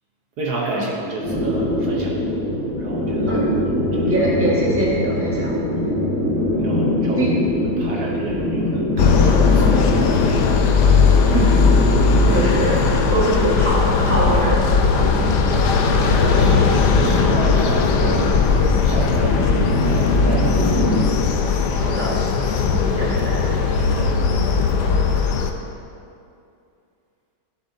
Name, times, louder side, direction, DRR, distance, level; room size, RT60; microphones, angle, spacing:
voice 1, 0.4-2.1 2.5-4.2 5.8-5.9 6.6-7.2 7.5-10.4 15.0-16.6 17.0-18.3 18.8-20.6 22.5-22.6 23.8-24.1, right 2 dB, 60° right, -3 dB, 1.4 m, -31 dB
sound 1, 1.2-21.0, left 1 dB, 85° left, 2.5 m, -23 dB
voice 2, 4.1-5.6 7.0-7.3 11.3-11.5 12.2-12.8 13.1-14.7 16.4-16.6 21.7-22.1 22.7-23.5, right 1 dB, 10° right, -6 dB, 1.4 m, -23 dB
sound 2, 9.0-25.5, left 5 dB, 70° left, 1.2 m, -18 dB
13.5 x 7.4 x 2.7 m, 2.5 s
omnidirectional pair, 2.0 m